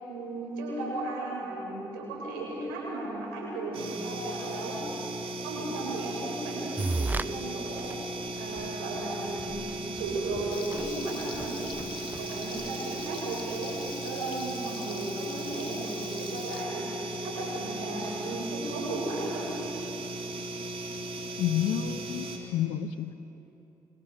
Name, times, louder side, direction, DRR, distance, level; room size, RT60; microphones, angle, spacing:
voice 1, 0.1-4.8 5.4-8.0 8.4-9.6 9.9-13.8 14.0-16.9 17.2-19.5, right 2 dB, 75° right, -3 dB, 7.5 m, -35 dB
sound 1, 3.7-22.4, right 2 dB, 55° right, 3.7 m, -37 dB
sound 2, 6.8-7.3 7.8-7.9 8.6-8.7 9.0-9.1 9.3-13.0, right 3 dB, 15° right, 0.5 m, -35 dB
Frying (food), 10.5-16.6, left 6 dB, 50° left, 1.8 m, -45 dB
voice 2, 21.4-23.1, left 10 dB, 70° left, 13 dB, 1.0 m, -30 dB
26.5 x 25.0 x 6.2 m, 3.0 s
figure-of-eight pair, 40°, 11 cm